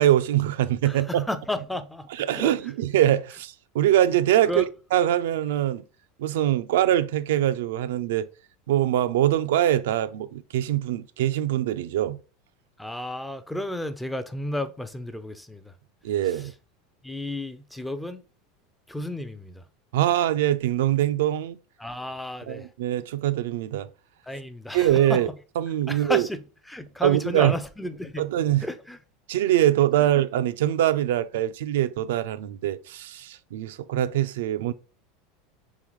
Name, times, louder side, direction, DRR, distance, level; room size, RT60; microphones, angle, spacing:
voice 1, 0.0-1.2 2.2-4.6 4.9-5.8 6.2-8.3 8.7-12.2 16.0-16.5 19.9-21.6 22.5-23.9 24.7-25.3 25.6-26.2 27.0-27.5 28.2-28.6 29.3-34.7, right 12 dB, 85° right, 0.3 m, -23 dB
voice 2, 0.8-2.7 4.4-4.7 12.8-15.8 16.2-16.5 17.0-18.2 18.9-19.6 21.8-22.7 24.2-25.3 25.9-28.3 28.6-29.0 30.0-30.1, left 1 dB, 5° left, 0.3 m, -33 dB
3.8 x 3.5 x 3.0 m
supercardioid pair, 145°, 0 cm